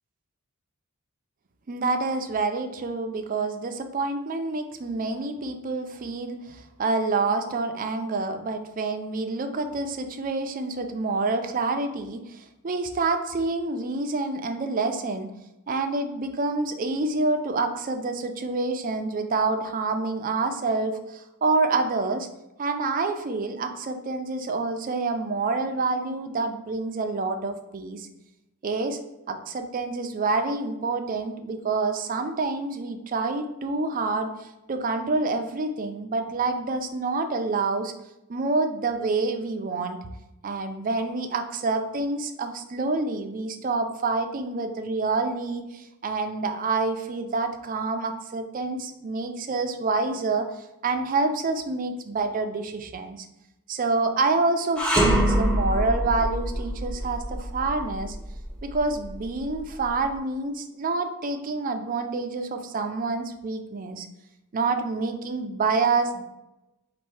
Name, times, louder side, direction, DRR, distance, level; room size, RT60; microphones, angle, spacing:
voice 1, 1.7-15.3 15.7-22.3 22.6-28.1 28.6-29.0 29.3-37.9 38.3-40.0 40.4-50.5 50.8-53.3 53.7-58.2 58.6-64.1 64.5-66.2, right 3 dB, 40° right, 6 dB, 0.4 m, -27 dB
sound 1, 54.8-60.0, right 1 dB, 5° left, 0.6 m, -25 dB
4.2 x 2.6 x 4.7 m, 0.93 s
head